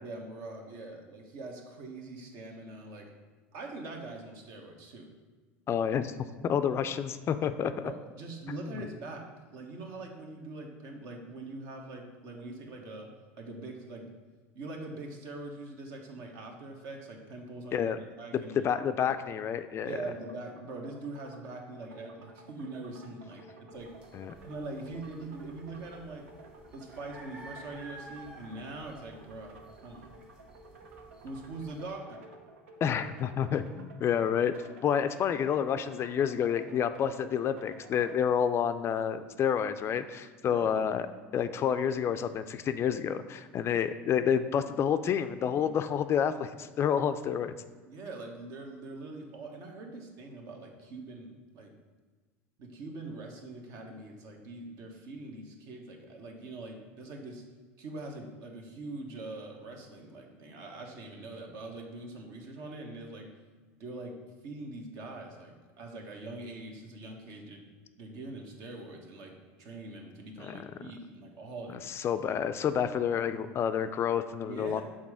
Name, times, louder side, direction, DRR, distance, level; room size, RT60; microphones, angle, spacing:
voice 1, 0.0-3.1 3.5-5.1 7.8-13.1 13.4-14.1 14.5-18.6 19.8-23.9 24.4-26.3 26.7-30.1 31.2-32.2 40.4-40.8 43.6-43.8 47.8-51.7 52.6-57.4 57.8-63.3 63.8-64.2 64.4-67.6 68.0-71.9 74.4-74.8, right 2 dB, 65° right, 2 dB, 1.1 m, -43 dB
voice 2, 5.7-6.1 6.4-7.9 8.5-8.7 17.7-18.0 18.3-19.9 24.1-24.3 32.8-34.5 34.8-41.1 41.3-47.5 70.4-70.7 71.9-74.8, left 8 dB, 40° left, 11 dB, 0.3 m, -29 dB
sound 1, 19.9-38.2, right 2 dB, 85° right, 0.7 m, -53 dB
sound 2, 23.7-32.0, right 1 dB, 15° right, 1.3 m, -53 dB
6.0 x 3.8 x 4.8 m, 1.4 s
hypercardioid pair, 90°, 7 cm